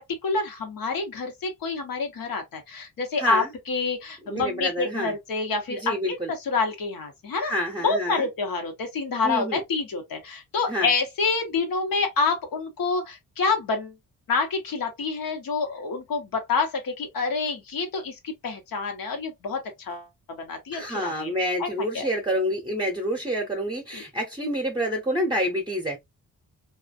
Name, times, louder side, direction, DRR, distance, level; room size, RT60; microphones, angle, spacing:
voice 1, 0.2-7.5 7.8-13.9 14.3-21.3 21.6-21.7 21.9-22.1 23.9-24.0, left 4 dB, 90° left, 1.0 m, -27 dB
voice 2, 3.2-3.5 4.2-5.2 5.7-6.3 7.4-8.3 9.2-9.6 10.7-10.9 20.7-26.0, equal, 15° right, 0.6 m, -28 dB
2.5 x 2.3 x 2.4 m
wide cardioid pair, 110°, 34 cm